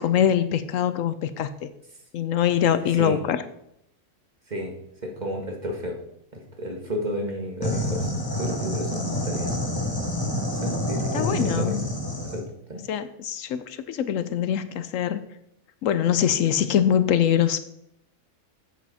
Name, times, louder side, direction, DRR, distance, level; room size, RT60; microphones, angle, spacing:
voice 1, 0.0-1.7 2.1-3.4 11.1-11.9 12.9-15.2 15.8-17.6, left 9 dB, 75° left, 12 dB, 1.0 m, -23 dB
voice 2, 2.6-3.2 4.5-4.7 5.0-6.0 6.3-8.1 8.4-9.7 10.6-11.7 12.3-12.8, equal, 35° right, 2 dB, 1.7 m, -32 dB
sound 1, 7.6-12.4, left 1 dB, 15° left, 1.5 m, -28 dB
9.0 x 7.8 x 4.2 m, 0.76 s
omnidirectional pair, 1.4 m